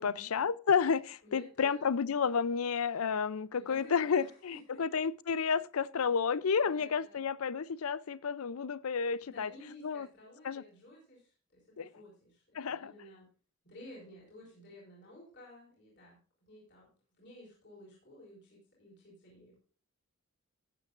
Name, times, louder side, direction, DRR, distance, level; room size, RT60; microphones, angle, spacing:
voice 1, 0.0-9.5 9.8-10.1 10.4-10.6 11.8-11.9 12.5-12.9, left 6 dB, 85° left, 0.5 m, -31 dB
voice 2, 1.2-1.9 3.5-4.8 6.0-6.1 6.6-7.2 9.2-13.3 13.6-16.2 16.5-16.9 17.2-19.6, left 1 dB, 50° left, 4.9 m, -54 dB
14.5 x 9.1 x 2.5 m
head